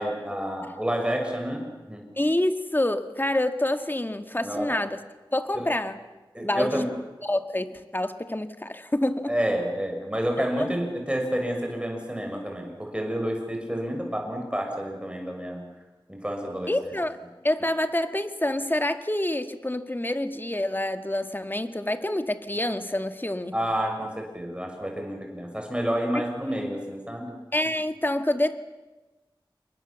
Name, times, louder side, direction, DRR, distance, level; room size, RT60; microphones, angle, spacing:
voice 1, 0.0-2.0 4.4-4.7 5.5-5.7 6.3-6.9 9.3-15.6 16.1-16.7 23.5-27.3, equal, 10° right, 2 dB, 6.3 m, -29 dB
voice 2, 2.2-5.0 5.3-6.0 6.4-6.8 7.2-9.3 10.6-10.7 16.7-17.2 17.4-23.5 27.5-28.6, left 1 dB, 25° left, 8 dB, 1.9 m, -27 dB
28.5 x 23.0 x 7.3 m, 1.1 s
wide cardioid pair, 45°, 9 cm